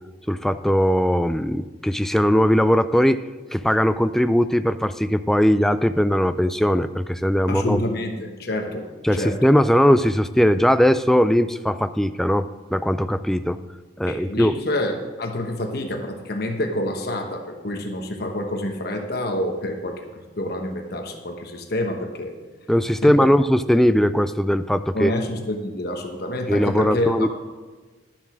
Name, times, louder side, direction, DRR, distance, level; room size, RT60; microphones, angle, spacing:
voice 1, 0.3-3.2 3.5-7.8 9.0-13.6 14.0-14.5 22.7-25.1 26.5-27.3, equal, ahead, 11 dB, 0.3 m, -19 dB
voice 2, 7.5-8.8 9.1-9.5 14.1-22.4 23.0-23.3 24.9-27.3, left 1 dB, 50° left, 4 dB, 1.1 m, -27 dB
11.5 x 7.3 x 6.1 m, 1.3 s
head